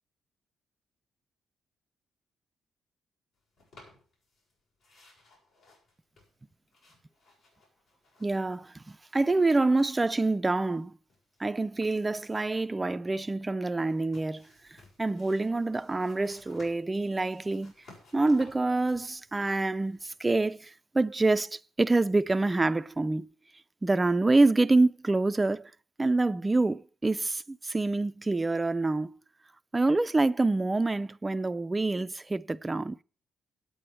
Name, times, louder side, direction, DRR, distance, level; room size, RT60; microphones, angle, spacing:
sound 1, 3.6-4.5 4.8-8.5 8.8-10.2 10.5-12.7 13.9-20.2, left 2 dB, 70° left, 7.1 m, -58 dB
voice 1, 8.2-10.9 11.4-14.5 15.0-17.7 18.1-23.3 23.8-25.7 26.0-29.1 29.7-33.0, right 2 dB, 20° right, 0.4 m, -26 dB
9.5 x 8.5 x 7.6 m
cardioid pair, 90°, 0 cm